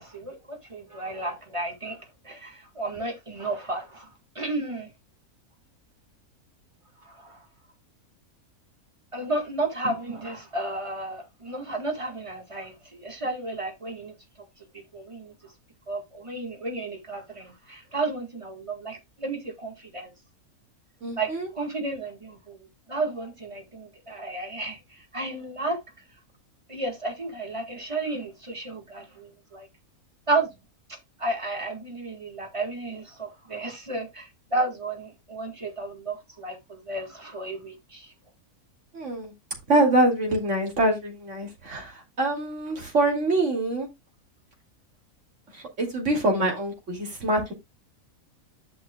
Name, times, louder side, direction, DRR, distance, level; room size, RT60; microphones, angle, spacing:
voice 1, 0.0-2.0 2.2-4.1 4.4-4.9 7.0-7.4 9.1-14.1 14.9-15.3 15.9-20.1 21.1-25.8 26.7-29.7 30.3-30.5 31.2-38.1, right 2 dB, 20° right, 1.8 m, -32 dB
voice 2, 21.0-21.5 38.9-39.3 39.7-43.9 45.5-47.5, right 2 dB, 55° right, 3.1 m, -25 dB
11.5 x 6.2 x 2.3 m
omnidirectional pair, 1.5 m